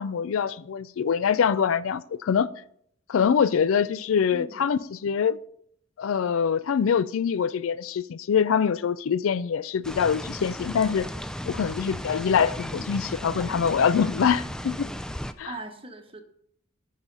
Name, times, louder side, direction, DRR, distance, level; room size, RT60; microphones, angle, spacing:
voice 1, 0.0-2.5 3.1-5.4 6.0-11.1 11.5-14.9 15.4-15.5, left 7 dB, 70° left, 0.4 m, -24 dB
voice 2, 4.3-4.7 15.5-16.2, right 1 dB, 25° right, 1.2 m, -40 dB
sound 1, 9.8-15.3, equal, 5° left, 0.4 m, -35 dB
13.5 x 5.6 x 5.4 m
head